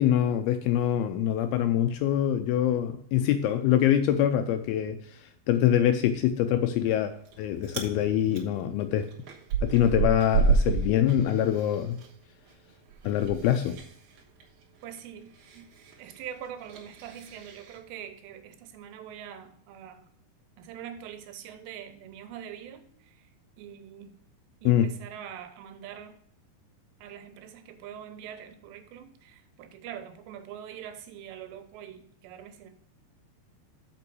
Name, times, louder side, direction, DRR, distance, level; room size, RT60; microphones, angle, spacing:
voice 1, 0.0-5.2 5.5-7.1 7.4-9.1 9.6-12.0 13.0-13.8 24.7-24.9, left 10 dB, 80° left, 8 dB, 2.3 m, -24 dB
Chewing mastication, 6.9-7.3 7.6-7.9 8.3-12.1 12.4-17.8, right 4 dB, 60° right, 2.2 m, -30 dB
voice 2, 14.8-15.7 16.0-20.1 20.6-23.3 23.6-24.1 24.6-26.2 27.0-32.7, right 9 dB, 90° right, 8 dB, 3.1 m, -43 dB
6.9 x 5.5 x 6.0 m, 0.66 s
omnidirectional pair, 4.8 m